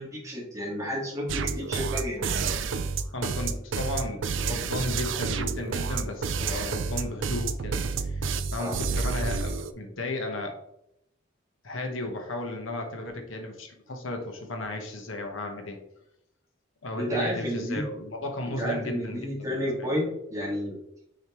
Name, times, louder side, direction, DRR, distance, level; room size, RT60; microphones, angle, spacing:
voice 1, 0.0-2.5 8.6-8.8 17.0-17.8 18.5-20.8, equal, 15° right, -4 dB, 1.9 m, -31 dB
sound 1, 1.3-9.7, right 5 dB, 65° right, 0.5 m, -29 dB
voice 2, 3.1-10.6 11.6-15.8 16.8-19.9, left 2 dB, 75° left, 4 dB, 1.1 m, -34 dB
6.4 x 5.1 x 3.1 m, 0.78 s
head